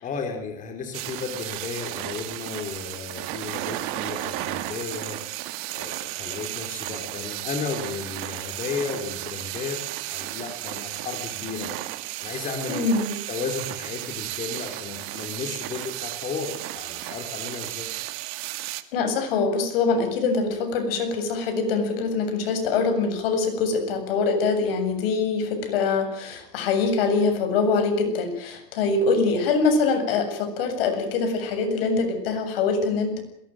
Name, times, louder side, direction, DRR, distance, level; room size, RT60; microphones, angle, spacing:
voice 1, 0.0-11.8 12.2-12.9 13.3-17.9, left 5 dB, 25° left, 5 dB, 4.1 m, -34 dB
sound 1, 0.9-18.8, right 16 dB, 45° right, 2.1 m, -34 dB
voice 2, 12.7-13.1 18.9-33.2, left 4 dB, 70° left, 7 dB, 7.5 m, -24 dB
22.0 x 19.5 x 9.2 m, 0.78 s
supercardioid pair, 150°, 30 cm